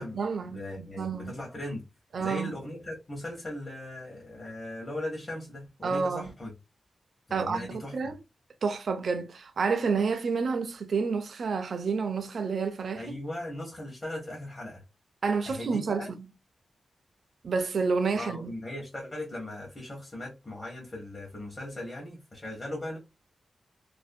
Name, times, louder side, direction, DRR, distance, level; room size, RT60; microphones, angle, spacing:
voice 1, 0.0-1.3 2.1-2.5 5.8-6.3 7.3-8.2 8.6-13.2 15.2-16.1 17.4-18.5, right 5 dB, 65° right, 0.4 m, -29 dB
voice 2, 0.5-1.8 2.2-6.5 7.3-8.1 13.0-14.8 15.5-16.1 18.1-23.0, left 1 dB, 30° left, 0.8 m, -38 dB
2.5 x 2.0 x 2.5 m
wide cardioid pair, 130°, 0 cm